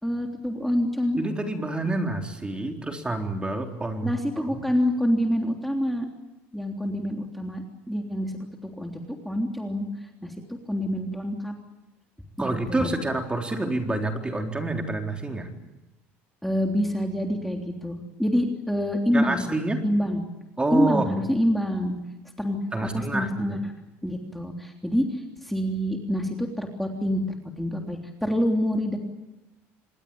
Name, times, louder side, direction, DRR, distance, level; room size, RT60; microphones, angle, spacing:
voice 1, 0.0-1.2 1.8-1.9 4.0-6.0 6.5-9.0 9.2-9.9 10.2-10.3 10.7-11.5 12.4-12.9 16.4-19.4 19.8-20.2 20.7-21.9 22.4-23.7 24.0-29.0, equal, ahead, 2 dB, 3.4 m, -26 dB
voice 2, 1.2-4.4 12.4-15.5 19.1-19.8 20.6-21.1 22.7-23.5, right 2 dB, 15° right, 3 dB, 4.0 m, -28 dB
27.0 x 20.5 x 8.9 m, 0.98 s
supercardioid pair, 95°, 7 cm